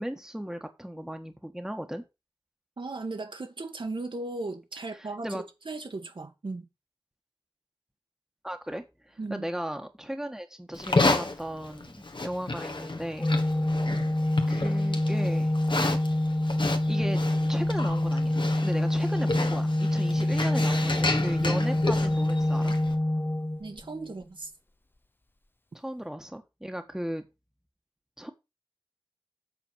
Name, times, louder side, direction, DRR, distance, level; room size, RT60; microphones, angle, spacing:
voice 1, 0.0-2.0 5.0-5.4 8.4-13.3 14.5-15.5 16.9-17.2 17.5-22.7 25.7-27.2 28.2-28.3, equal, 5° right, 1.4 m, -36 dB
voice 2, 2.8-6.7 9.2-9.5 23.6-24.5, right 3 dB, 70° right, 1.6 m, -37 dB
Livestock farm animals working animals, 10.7-22.9, left 3 dB, 65° left, 1.6 m, -31 dB
Organ, 13.2-24.1, left 1 dB, 25° left, 0.7 m, -26 dB
8.2 x 4.5 x 6.3 m
wide cardioid pair, 60°, 9 cm